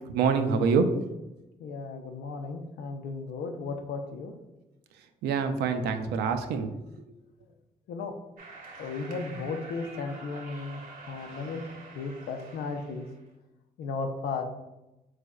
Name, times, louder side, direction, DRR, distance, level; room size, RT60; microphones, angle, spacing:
voice 1, 0.1-0.9 5.2-6.7, right 5 dB, 85° right, 7 dB, 0.4 m, -25 dB
voice 2, 1.6-4.3 7.9-8.1 8.8-10.8 11.1-13.1 13.8-14.4, left 4 dB, 75° left, 5 dB, 0.5 m, -35 dB
sound 1, 8.4-13.2, right 3 dB, 60° right, 0.8 m, -47 dB
3.8 x 3.2 x 2.3 m, 0.99 s
supercardioid pair, 65°, 16 cm